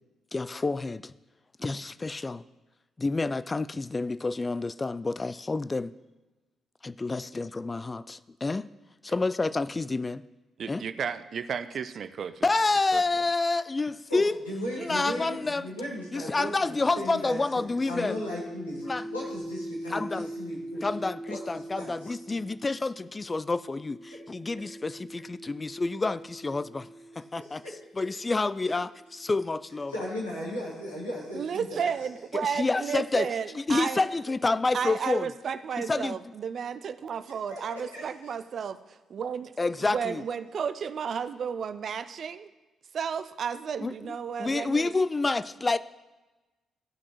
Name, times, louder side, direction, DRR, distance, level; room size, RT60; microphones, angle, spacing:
voice 1, 0.3-1.1 1.6-2.4 3.0-5.9 6.8-8.7 9.0-10.2 10.7-10.8 12.4-14.4 14.8-15.7 16.1-18.2 18.8-19.1 19.9-20.3 20.8-26.9 27.2-27.6 27.9-29.9 32.3-33.3 33.5-35.3 35.9-36.2 39.6-40.2 43.8-45.8, left 3 dB, 25° left, 0.3 m, -29 dB
voice 2, 10.6-12.5 12.9-13.0 31.3-34.0 34.7-38.8 39.1-39.5 39.8-42.5 42.9-44.9, right 7 dB, 50° right, 0.4 m, -32 dB
voice 3, 14.1-20.9 21.3-22.2 27.1-27.7 29.9-31.9 37.5-38.3, equal, 85° left, 2.1 m, -37 dB
sound 1, 17.6-27.9 28.8-32.6, right 1 dB, 50° left, 1.9 m, -43 dB
16.0 x 6.0 x 3.0 m
figure-of-eight pair, 40°, 0 cm